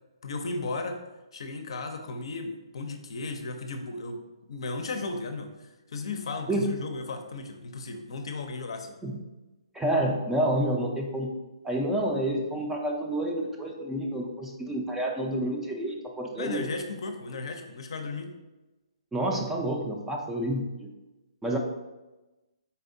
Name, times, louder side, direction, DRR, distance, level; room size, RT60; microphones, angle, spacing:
voice 1, 0.2-1.0 1.3-4.2 4.5-8.9 16.4-18.3, left 3 dB, 60° left, 5 dB, 0.5 m, -35 dB
voice 2, 9.7-11.3 11.6-16.6 19.1-20.9 21.4-21.6, right 1 dB, 5° right, 0 dB, 0.4 m, -29 dB
4.2 x 3.4 x 2.6 m, 1.1 s
hypercardioid pair, 140°, 3 cm